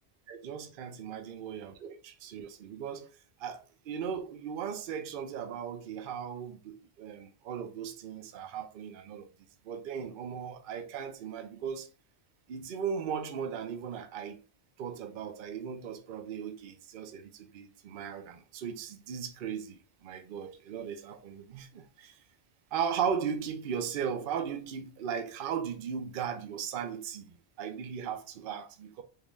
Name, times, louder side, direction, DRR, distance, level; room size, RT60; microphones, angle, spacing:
voice 1, 0.3-9.3 9.6-11.9 12.5-14.4 14.8-22.2 22.7-29.0, right 7 dB, 60° right, 0.7 m, -37 dB
3.7 x 2.5 x 3.1 m
omnidirectional pair, 1.1 m